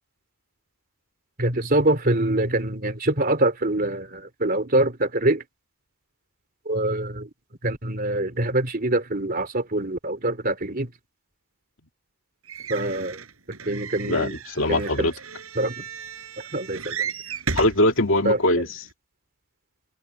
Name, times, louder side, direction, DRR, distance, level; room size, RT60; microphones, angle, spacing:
voice 1, 1.4-5.4 6.6-7.3 7.6-10.9 12.7-13.2 13.6-14.4 14.7-15.1 15.5-15.8 16.5-17.1 18.2-18.4, right 1 dB, 40° right, 3.4 m, -24 dB
sound 1, 12.5-17.8 18.6-18.7 18.9-19.0, right 5 dB, 70° right, 4.5 m, -34 dB
voice 2, 14.1-15.1 17.5-18.7, left 1 dB, 60° left, 2.5 m, -21 dB
head